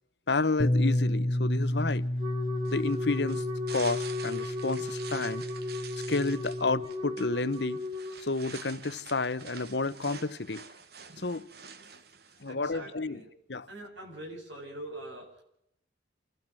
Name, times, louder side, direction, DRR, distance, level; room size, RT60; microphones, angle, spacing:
voice 1, 0.3-2.1 2.7-3.4 3.7-5.4 6.1-7.8 8.2-10.6 11.2-11.5 12.4-13.2 13.5-13.7, left 3 dB, 65° left, 1.0 m, -30 dB
Bass guitar, 0.6-6.8, left 1 dB, 35° left, 1.1 m, -31 dB
Wind instrument woodwind instrument, 2.2-8.3, left 2 dB, 25° right, 2.1 m, -36 dB
sound 1, 2.6-12.5, right 6 dB, 55° right, 1.3 m, -47 dB
voice 2, 12.5-13.3 13.7-15.4, right 1 dB, 75° right, 7.8 m, -43 dB
29.0 x 12.5 x 7.8 m
head